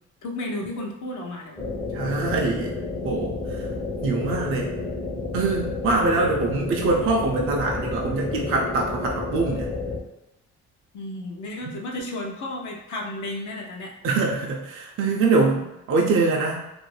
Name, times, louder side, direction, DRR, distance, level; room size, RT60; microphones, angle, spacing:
voice 1, 0.2-1.6 5.8-6.1 10.9-13.9, left 1 dB, 70° left, 0 dB, 0.6 m, -33 dB
sound 1, 1.6-10.0, left 3 dB, 20° left, 0.5 m, -30 dB
voice 2, 1.9-2.7 3.0-3.7 4.0-4.7 5.3-9.7 14.0-16.7, right 3 dB, 45° right, -1 dB, 0.4 m, -24 dB
2.5 x 2.1 x 3.1 m, 0.90 s
cardioid pair, 90°, 30 cm